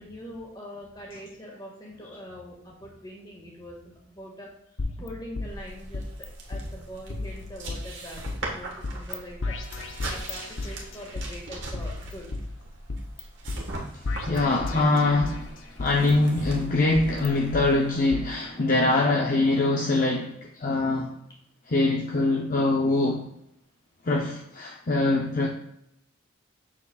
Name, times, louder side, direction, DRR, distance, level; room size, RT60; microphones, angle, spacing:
voice 1, 0.0-8.2 8.5-9.6 10.0-12.6, equal, 20° left, -2 dB, 1.8 m, -43 dB
sound 1, 4.8-6.3 6.5-6.6 7.1-8.4 8.8-9.2 9.4-11.3 11.7-13.2 13.5-13.6 14.0-15.4 15.8-17.6 18.1-18.2, left 3 dB, 75° left, 0.7 m, -34 dB
sound 2, 5.4-18.1, right 2 dB, 65° right, 1.4 m, -41 dB
voice 2, 14.3-15.5 15.8-21.1 21.7-23.3 24.0-25.5, left 2 dB, 40° left, 0 dB, 0.6 m, -23 dB
7.0 x 7.0 x 2.4 m, 0.77 s
head